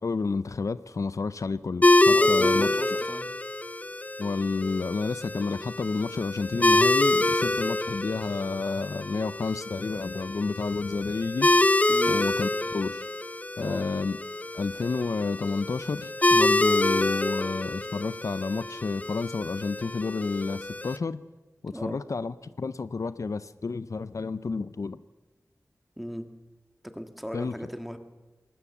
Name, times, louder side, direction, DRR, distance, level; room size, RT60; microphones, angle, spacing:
voice 1, 0.0-2.7 4.2-11.5 12.1-13.1 13.6-14.2 14.5-21.2 21.6-25.0 27.3-27.6, left 4 dB, 70° left, 15 dB, 0.6 m, -30 dB
sound 1, 1.8-21.0, left 2 dB, 25° left, 0.6 m, -26 dB
voice 2, 2.1-3.3 11.9-12.2 13.6-13.8 21.7-22.0 26.0-26.3 26.8-28.0, equal, ahead, 7 dB, 1.7 m, -37 dB
20.5 x 18.0 x 7.3 m, 1.2 s
wide cardioid pair, 75°, 6 cm